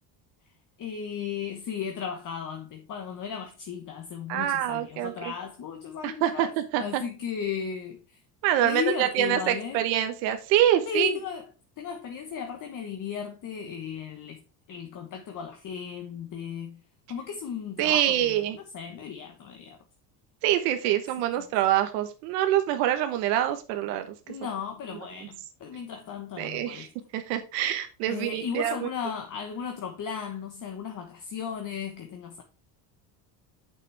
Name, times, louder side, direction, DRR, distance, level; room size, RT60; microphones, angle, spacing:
voice 1, 0.8-6.5 6.8-8.2 8.6-9.9 10.9-11.4 11.8-16.8 17.1-19.8 21.4-21.5 24.3-26.9 28.1-32.4, left 7 dB, 40° left, 1.2 m, -35 dB
voice 2, 4.3-5.3 6.0-7.0 8.4-11.2 17.8-18.6 20.4-24.1 26.4-26.9 27.1-28.9, right 12 dB, 85° right, 1.2 m, -25 dB
6.9 x 6.0 x 3.4 m
supercardioid pair, 105°, 47 cm